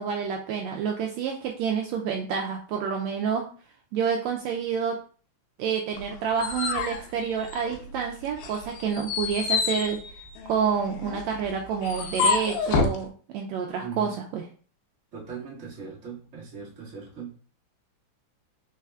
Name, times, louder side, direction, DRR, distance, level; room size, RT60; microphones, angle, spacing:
voice 1, 0.0-3.5 3.9-5.0 5.6-14.4, right 7 dB, 85° right, 1 dB, 1.5 m, -28 dB
sound 1, 6.0-8.0 8.4-13.0, left 5 dB, 80° left, 2.2 m, -28 dB
voice 2, 13.8-14.2 15.1-17.3, right 6 dB, 35° right, -6 dB, 1.2 m, -39 dB
4.3 x 4.1 x 2.3 m, 0.41 s
omnidirectional pair, 3.6 m